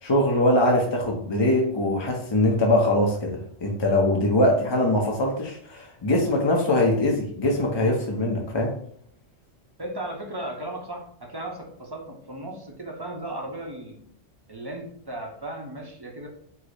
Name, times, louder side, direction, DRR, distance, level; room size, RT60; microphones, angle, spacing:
voice 1, 0.0-8.8, left 1 dB, 35° left, -1 dB, 0.5 m, -22 dB
voice 2, 9.8-14.0 14.5-16.3, right 1 dB, 25° right, 0 dB, 0.6 m, -36 dB
4.7 x 2.0 x 4.6 m, 0.63 s
omnidirectional pair, 1.2 m